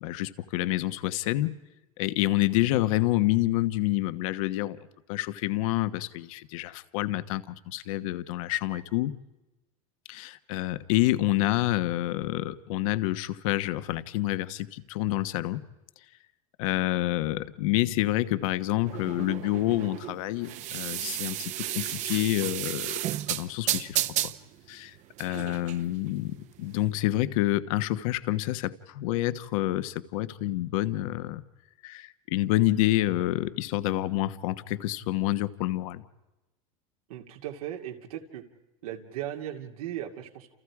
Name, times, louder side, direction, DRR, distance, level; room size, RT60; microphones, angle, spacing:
voice 1, 0.0-1.6 2.0-4.8 5.1-9.1 10.1-15.6 16.6-24.3 24.7-31.4 31.8-36.0, left 16 dB, 70° left, 1.3 m, -28 dB
sound 1, 18.8-26.9, right 13 dB, 40° right, 1.0 m, -33 dB
voice 2, 25.2-25.6 37.1-38.4 38.8-40.5, right 11 dB, 85° right, 2.7 m, -37 dB
29.5 x 28.5 x 4.9 m
supercardioid pair, 145°, 18 cm